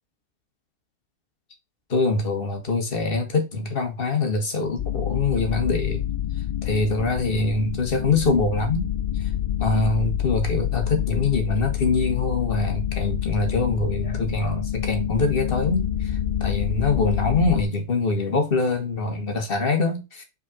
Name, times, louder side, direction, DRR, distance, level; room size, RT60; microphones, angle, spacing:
voice 1, 1.9-6.0 6.6-8.9 9.1-9.3 9.6-20.2, left 3 dB, 40° left, 1.7 m, -24 dB
sound 1, 4.8-17.6, left 11 dB, 85° left, 0.4 m, -27 dB
5.5 x 4.2 x 4.3 m
omnidirectional pair, 1.6 m